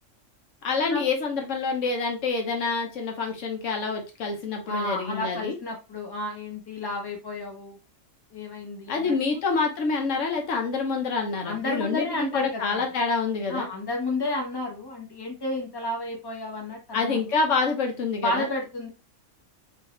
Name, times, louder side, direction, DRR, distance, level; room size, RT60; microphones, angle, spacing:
voice 1, 0.6-5.6 8.9-13.7 16.9-18.5, left 4 dB, 80° left, 2 dB, 1.3 m, -27 dB
voice 2, 4.7-7.7 8.3-9.4 11.4-12.8 13.5-17.2 18.2-18.9, left 2 dB, 20° left, 0 dB, 1.1 m, -31 dB
4.9 x 2.7 x 3.1 m, 0.29 s
omnidirectional pair, 1.3 m